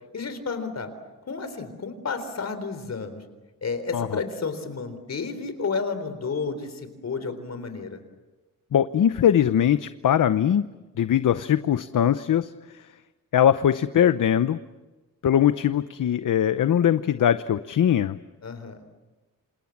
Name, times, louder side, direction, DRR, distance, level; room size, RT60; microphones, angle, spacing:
voice 1, 0.1-0.9 1.3-3.2 3.6-8.0 18.4-18.8, left 4 dB, 50° left, 10 dB, 4.0 m, -31 dB
voice 2, 8.7-10.6 11.0-12.5 13.3-14.6 15.2-18.2, left 10 dB, 70° left, 12 dB, 0.8 m, -21 dB
28.0 x 27.5 x 7.3 m, 1.2 s
wide cardioid pair, 150°, 33 cm